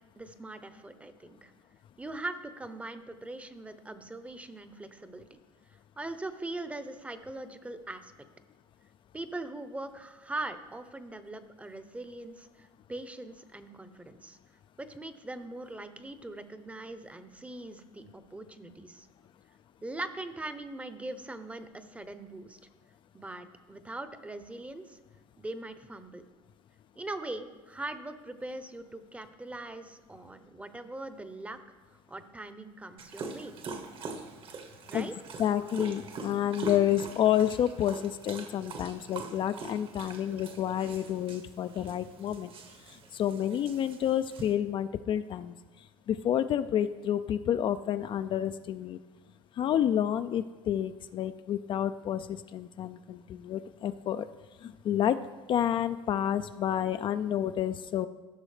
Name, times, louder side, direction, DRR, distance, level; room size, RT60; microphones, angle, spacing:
voice 1, 0.2-1.5 2.0-5.4 6.0-8.3 9.1-14.4 14.8-19.1 19.8-22.6 23.1-25.0 25.4-26.2 27.0-31.6 31.9-33.5 34.9-35.1, right 2 dB, 10° right, 11 dB, 0.7 m, -41 dB
Dog, 33.0-44.5, right 4 dB, 50° right, 1.2 m, -44 dB
voice 2, 35.4-42.5 42.9-45.5 46.1-49.0 49.6-54.3 54.6-55.2 55.5-58.1, left 10 dB, 45° left, 10 dB, 0.4 m, -29 dB
15.0 x 6.2 x 3.3 m, 1.3 s
supercardioid pair, 90°, 12 cm